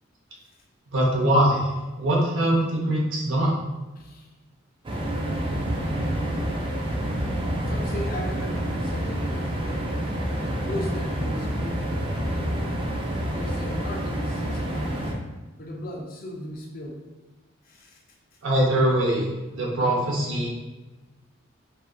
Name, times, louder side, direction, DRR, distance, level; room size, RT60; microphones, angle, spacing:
voice 1, 0.9-1.7 2.0-3.5 18.4-19.2 19.5-20.5, right 1 dB, 80° right, -3 dB, 0.6 m, -22 dB
voice 2, 4.0-4.3 7.7-9.5 10.6-12.6 13.2-15.1 15.6-17.0 17.6-18.0, left 1 dB, 45° left, 1 dB, 0.4 m, -37 dB
sound 1, 4.8-15.1, equal, 25° right, 0.3 m, -28 dB
2.7 x 2.3 x 2.3 m, 1.1 s
head